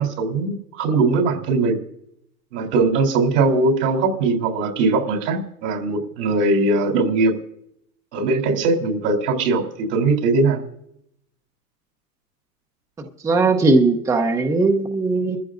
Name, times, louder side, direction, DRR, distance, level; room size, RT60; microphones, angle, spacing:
voice 1, 0.0-1.8 2.5-7.4 8.1-10.6, right 3 dB, 80° right, 2 dB, 3.5 m, -20 dB
voice 2, 13.0-15.4, right 3 dB, 5° right, 4 dB, 0.6 m, -19 dB
22.0 x 14.5 x 2.6 m, 0.74 s
supercardioid pair, 145°, 48 cm